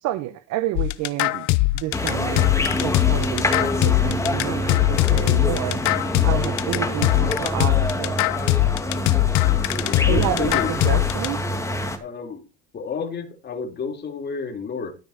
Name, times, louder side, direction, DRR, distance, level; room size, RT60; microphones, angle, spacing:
voice 1, 0.0-1.5 1.7-2.5 2.8-5.8 6.2-8.2 10.1-11.5, right 14 dB, 60° right, 1.0 m, -29 dB
sound 1, 0.8-11.3, left 20 dB, 65° left, 0.8 m, -21 dB
sound 2, 1.9-12.0, left 1 dB, 10° left, 2.0 m, -26 dB
voice 2, 9.8-10.7 12.0-12.4 12.7-14.9, left 5 dB, 30° left, 3.2 m, -30 dB
13.0 x 5.2 x 5.8 m
supercardioid pair, 110°, 32 cm